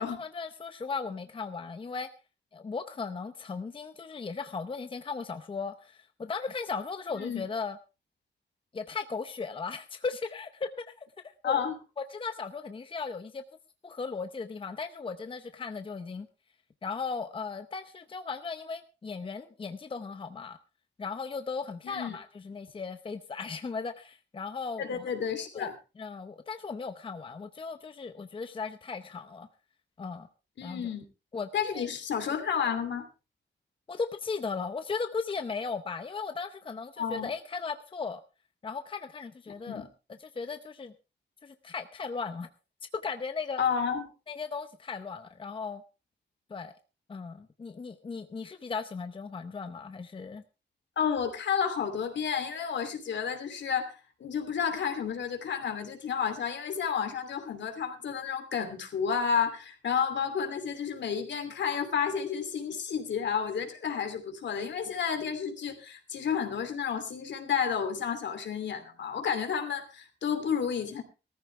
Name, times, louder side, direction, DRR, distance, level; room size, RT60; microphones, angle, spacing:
voice 1, 0.0-2.1 2.5-7.8 8.7-11.6 12.0-13.4 13.8-16.3 16.8-20.6 21.0-25.1 25.5-25.7 26.0-29.5 30.0-30.3 30.6-30.9 31.3-31.9 33.9-38.2 38.6-39.8 40.2-40.9 41.4-42.5 43.0-43.6 44.3-45.8 46.5-46.7 47.1-50.4, left 5 dB, 30° left, 9 dB, 0.7 m, -37 dB
voice 2, 7.1-7.4 11.4-11.7 21.8-22.2 24.8-25.8 30.6-31.0 31.5-33.1 37.0-37.3 39.7-39.9 43.6-44.0 51.0-71.0, left 7 dB, 75° left, 7 dB, 2.9 m, -31 dB
18.0 x 14.0 x 3.3 m, 0.30 s
wide cardioid pair, 155°, 19 cm